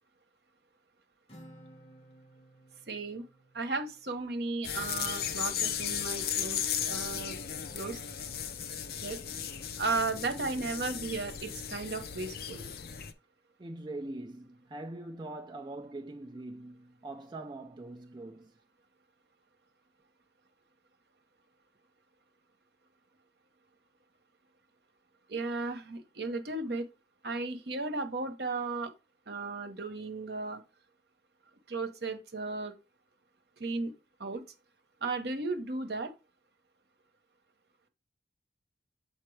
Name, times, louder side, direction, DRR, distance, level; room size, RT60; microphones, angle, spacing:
Acoustic guitar, 1.3-4.9, right 1 dB, 30° left, 1.6 m, -56 dB
voice 1, 2.9-3.3 3.5-7.4 7.7-8.0 9.0-9.2 9.8-12.7 25.3-26.9 27.2-28.9 29.3-30.6 31.7-32.8 33.6-33.9 34.2-34.4 35.0-36.1, right 3 dB, 60° right, 1.0 m, -35 dB
sound 1, 4.6-13.1, left 8 dB, 55° left, 0.6 m, -36 dB
voice 2, 13.6-18.6, right 2 dB, 25° right, 0.4 m, -42 dB
7.4 x 4.4 x 3.2 m
head